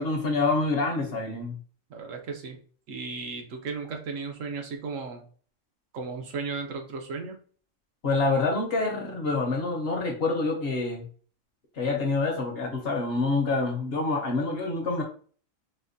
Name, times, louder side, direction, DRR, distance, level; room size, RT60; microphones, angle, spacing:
voice 1, 0.0-1.6 8.0-11.1 11.7-15.0, left 3 dB, 55° left, 2 dB, 0.8 m, -27 dB
voice 2, 1.9-2.6 2.9-5.2 5.9-7.4, right 4 dB, 75° right, 3 dB, 1.0 m, -35 dB
4.1 x 2.1 x 2.5 m, 0.43 s
omnidirectional pair, 1.4 m